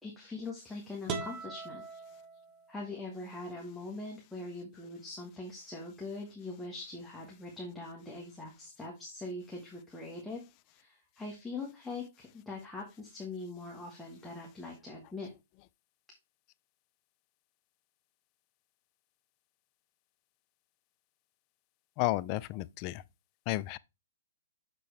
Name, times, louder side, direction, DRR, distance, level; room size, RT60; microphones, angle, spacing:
voice 1, 0.0-1.8 2.7-10.4 10.7-15.3, left 3 dB, 5° left, 1.5 m, -42 dB
sound 1, 1.1-3.0, right 4 dB, 30° right, 1.4 m, -41 dB
voice 2, 22.0-23.0 23.5-23.8, left 18 dB, 35° left, 0.4 m, -32 dB
6.4 x 6.1 x 3.4 m
hypercardioid pair, 135°, 0 cm